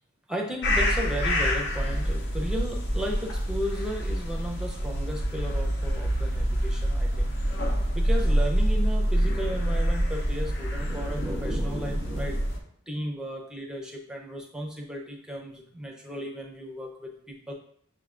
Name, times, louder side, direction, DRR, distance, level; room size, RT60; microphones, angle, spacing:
voice 1, 0.3-7.3 7.9-12.5 12.9-17.5, equal, 5° right, 1 dB, 0.5 m, -34 dB
sound 1, 0.6-12.6, equal, 55° left, 0.7 m, -26 dB
6.5 x 2.2 x 3.6 m, 0.63 s
head